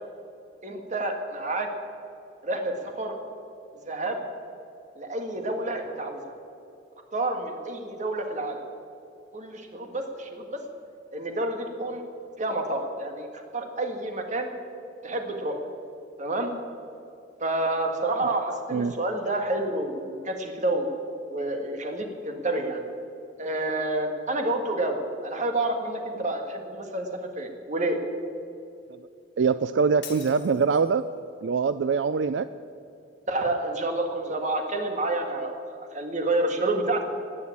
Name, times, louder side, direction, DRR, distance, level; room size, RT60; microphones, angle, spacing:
voice 1, 0.6-1.7 2.4-3.2 3.9-4.2 5.0-6.3 7.1-8.6 9.3-10.6 11.1-12.0 12.4-14.5 15.0-15.6 16.2-16.5 17.4-20.9 21.3-22.8 23.4-28.0 33.3-35.6 35.9-37.0, right 2 dB, 40° right, 4 dB, 1.9 m, -29 dB
voice 2, 29.4-31.0 31.4-32.5, right 5 dB, 75° right, 13 dB, 0.4 m, -23 dB
Shatter, 30.0-31.0, left 9 dB, 70° left, 2.0 m, -44 dB
17.0 x 9.8 x 8.6 m, 2.7 s
head